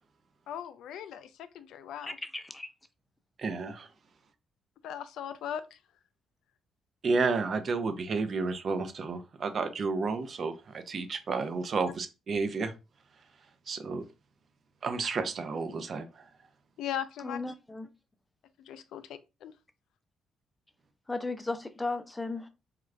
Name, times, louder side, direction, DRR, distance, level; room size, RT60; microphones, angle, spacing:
voice 1, 0.5-1.3 1.5-2.2 4.8-5.8 16.8-17.4 18.6-19.5, left 9 dB, 80° left, 0.3 m, -38 dB
voice 2, 2.0-2.7 17.2-17.9 21.1-22.5, left 3 dB, 15° left, 0.5 m, -35 dB
voice 3, 3.4-3.9 7.0-12.7 13.7-14.1 14.8-16.3, right 4 dB, 50° right, 0.6 m, -31 dB
3.7 x 2.3 x 3.2 m
cardioid pair, 90°, 0 cm